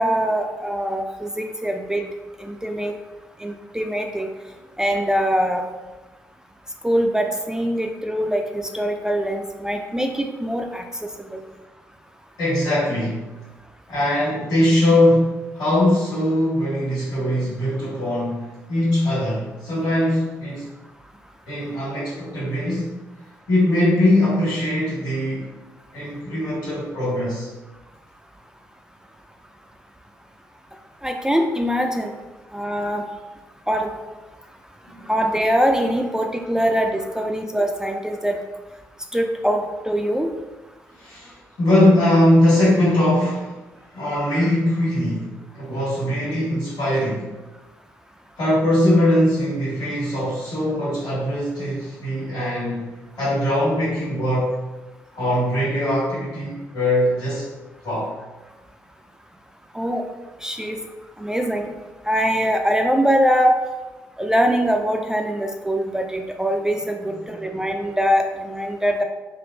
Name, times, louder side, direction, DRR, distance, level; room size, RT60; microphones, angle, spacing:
voice 1, 0.0-2.0 2.4-2.9 3.4-4.3 4.8-5.6 6.8-10.8 11.3-11.4 31.0-32.1 32.5-33.0 33.7-33.9 35.1-38.4 39.1-40.3 59.7-60.0 60.4-60.8 61.2-61.7 62.1-63.5 64.2-69.0, equal, 5° right, 3 dB, 0.3 m, -22 dB
voice 2, 12.4-13.2 13.9-20.6 21.5-22.9 23.5-25.4 25.9-27.5 34.8-35.1 41.0-43.5 43.9-45.3 45.5-47.3 48.4-52.9 53.2-54.5 55.1-57.5 57.8-58.1 67.2-67.6, left 1 dB, 60° left, -10 dB, 1.4 m, -21 dB
3.6 x 2.0 x 2.7 m, 1.1 s
figure-of-eight pair, 40°, 8 cm